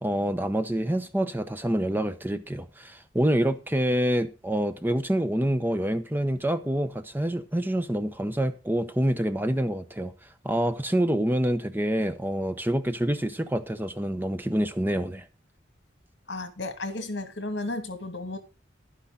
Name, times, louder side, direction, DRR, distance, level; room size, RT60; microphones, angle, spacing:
voice 1, 0.0-10.1 10.4-15.3, right 1 dB, 10° right, 0.9 m, -27 dB
voice 2, 16.3-18.4, left 2 dB, 75° left, 2.3 m, -33 dB
11.5 x 10.0 x 4.0 m
head